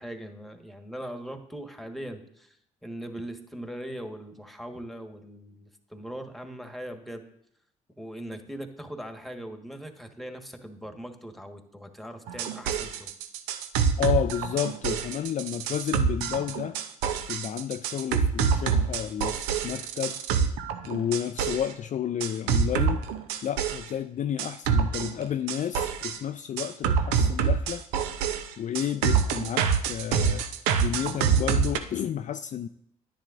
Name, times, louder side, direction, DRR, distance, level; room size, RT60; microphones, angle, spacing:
voice 1, 0.0-2.6 2.8-7.3 8.0-13.1, right 1 dB, ahead, 6 dB, 1.4 m, -40 dB
sound 1, 12.3-21.7 22.2-23.9 24.4-26.2 26.6-31.8, right 6 dB, 75° right, 0.7 m, -26 dB
voice 2, 14.0-16.8 17.3-19.4 19.6-20.2 20.9-23.1 23.4-27.8 28.6-30.5 30.8-32.7, left 9 dB, 45° left, 9 dB, 0.4 m, -31 dB
10.5 x 10.0 x 2.5 m, 0.72 s
hypercardioid pair, 45°, 18 cm